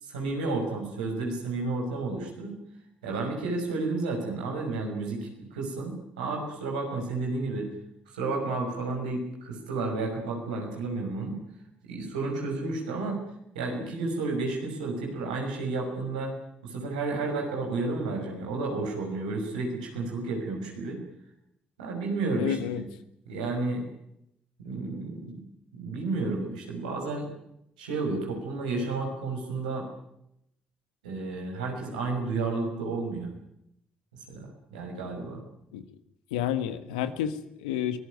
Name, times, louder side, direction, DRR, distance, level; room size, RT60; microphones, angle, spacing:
voice 1, 0.0-2.6 3.0-7.7 8.1-11.4 11.8-13.2 13.5-16.3 16.6-21.0 21.8-22.8 23.3-23.8 24.6-25.4 25.8-27.3 27.8-29.9 31.0-33.3 34.3-35.4, right 3 dB, 85° right, 1 dB, 6.0 m, -31 dB
voice 2, 22.4-22.8 35.7-35.8 36.3-38.0, left 10 dB, 85° left, 11 dB, 1.5 m, -30 dB
24.5 x 19.0 x 9.5 m, 0.79 s
hypercardioid pair, 40°, 4 cm